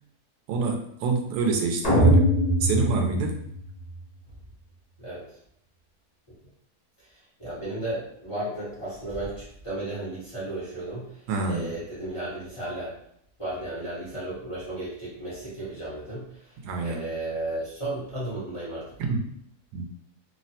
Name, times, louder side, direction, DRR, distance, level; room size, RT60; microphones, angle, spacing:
voice 1, 0.5-2.3 2.6-3.4 11.3-11.7 16.6-17.0 19.0-19.2 19.7-19.9, right 4 dB, 90° right, 2 dB, 1.1 m, -27 dB
sound 1, 1.8-4.0, equal, 45° left, 0.5 m, -21 dB
voice 2, 7.4-11.1 11.4-13.0 13.4-16.4 16.8-18.9, right 1 dB, 25° left, -10 dB, 0.9 m, -34 dB
3.2 x 2.0 x 2.7 m, 0.69 s
omnidirectional pair, 1.7 m